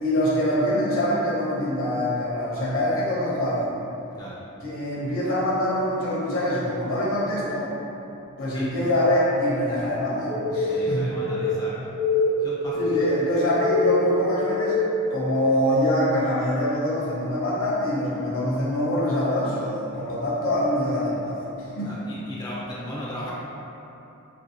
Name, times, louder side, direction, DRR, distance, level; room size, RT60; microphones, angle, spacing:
voice 1, 0.0-3.7 4.6-7.7 8.4-11.1 12.7-14.8 15.1-22.0, left 1 dB, 65° left, -6 dB, 0.7 m, -24 dB
voice 2, 8.5-8.8 10.7-11.7 12.4-13.2 21.8-23.3, equal, 20° left, -8 dB, 0.4 m, -36 dB
sound 1, 10.3-15.1, left 2 dB, 45° right, 0.7 m, -24 dB
2.9 x 2.5 x 2.8 m, 2.9 s
head